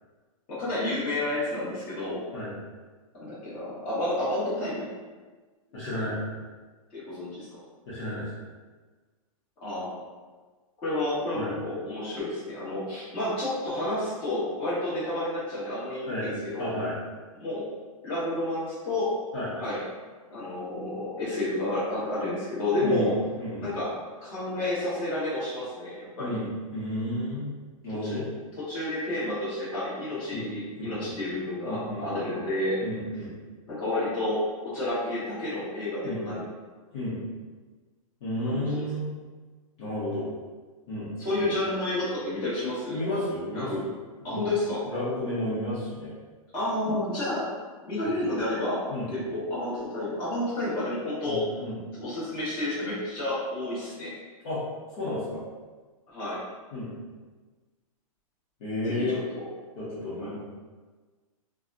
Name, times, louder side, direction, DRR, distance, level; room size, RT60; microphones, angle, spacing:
voice 1, 0.5-2.3 3.1-4.8 6.9-7.5 9.6-10.0 10.8-16.7 17.4-17.7 18.0-19.1 19.6-19.8 20.3-23.2 23.6-26.4 28.0-28.2 28.6-32.8 33.7-36.5 38.5-38.8 41.2-43.0 43.5-43.8 44.2-44.8 46.5-47.5 47.9-51.4 52.0-54.1 56.1-56.4 58.8-58.9 59.3-59.4 60.2-60.4, left 1 dB, 25° left, -10 dB, 1.4 m, -30 dB
voice 2, 5.7-6.2 7.9-8.3 11.3-11.5 16.1-16.3 16.6-16.9 19.3-19.5 22.8-23.7 26.2-27.5 27.8-28.2 30.3-30.5 30.8-31.1 31.7-32.2 32.8-33.3 36.0-36.2 36.9-37.2 38.2-39.1 39.8-40.3 40.9-41.4 42.9-43.9 44.2-44.5 44.9-46.1 48.9-49.1 51.3-51.8 54.4-54.6 55.0-55.4 56.7-56.9 58.6-59.2 59.8-60.4, left 1 dB, 45° left, -11 dB, 1.2 m, -32 dB
3.3 x 2.3 x 2.6 m, 1.4 s
hypercardioid pair, 155°, 18 cm